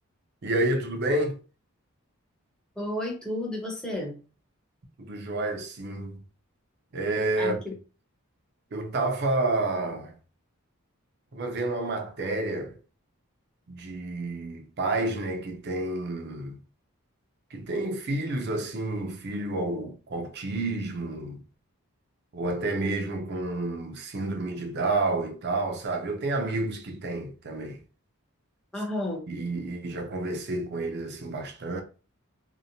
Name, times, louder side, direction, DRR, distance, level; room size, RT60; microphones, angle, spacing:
voice 1, 0.4-1.4 5.0-6.2 6.9-7.6 8.7-10.1 11.3-12.8 13.7-16.6 17.5-21.4 22.3-27.8 29.3-31.8, right 2 dB, 50° right, 0.5 m, -30 dB
voice 2, 2.8-4.2 7.4-7.7 28.7-29.2 29.5-29.6, left 1 dB, 5° left, 0.6 m, -32 dB
2.7 x 2.1 x 2.7 m
head